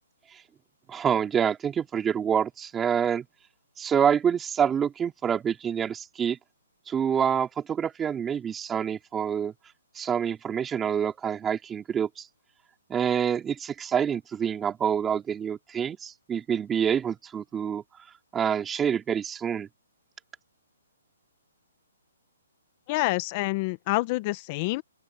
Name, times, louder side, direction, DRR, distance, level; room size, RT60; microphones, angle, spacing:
voice 1, 0.9-3.2 3.8-6.4 6.9-9.5 9.9-12.3 12.9-17.8 18.3-19.7, right 8 dB, 10° right, 3.0 m, -27 dB
voice 2, 22.9-24.8, left 21 dB, 30° left, 0.8 m, -27 dB
open air
hypercardioid pair, 160°, 0 cm